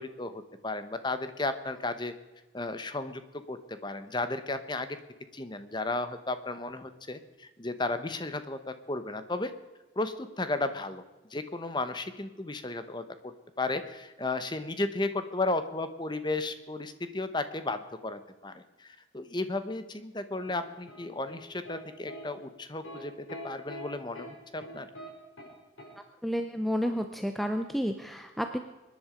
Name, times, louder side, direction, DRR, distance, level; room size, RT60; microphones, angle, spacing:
voice 1, 0.0-2.1 2.5-3.2 3.5-5.0 5.3-9.5 10.0-11.0 11.3-24.9, left 2 dB, 20° left, 10 dB, 0.9 m, -34 dB
sound 1, 20.3-21.8 22.1-22.2 22.8-23.0 23.3-23.8 24.1-24.3 24.6-25.1 25.4-25.5 25.8-25.9, equal, 80° left, 6.6 m, -44 dB
voice 2, 26.2-28.6, equal, ahead, 6 dB, 0.6 m, -31 dB
24.5 x 10.5 x 5.1 m, 1.1 s
head